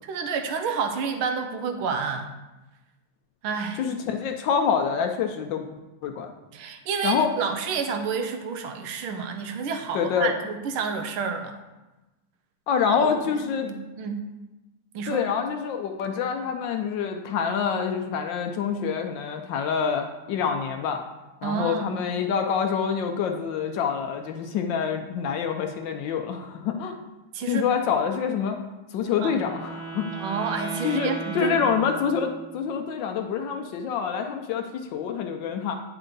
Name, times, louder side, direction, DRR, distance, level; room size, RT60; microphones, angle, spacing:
voice 1, 0.1-2.3 3.4-3.8 6.5-11.6 12.8-13.1 13.4-14.2 14.9-15.2 21.4-22.0 27.3-27.7 29.2-29.3 30.1-31.6, right 5 dB, 80° right, 6 dB, 1.5 m, -29 dB
voice 2, 3.8-5.7 6.0-6.3 7.0-7.3 9.9-10.3 12.7-13.7 15.1-21.0 21.4-27.0 27.5-28.6 28.9-30.1 30.8-35.8, left 7 dB, 70° left, 4 dB, 1.2 m, -26 dB
Wind instrument woodwind instrument, 28.9-32.6, right 3 dB, 40° right, 2.2 m, -37 dB
9.0 x 4.4 x 3.9 m, 1.1 s
omnidirectional pair, 2.3 m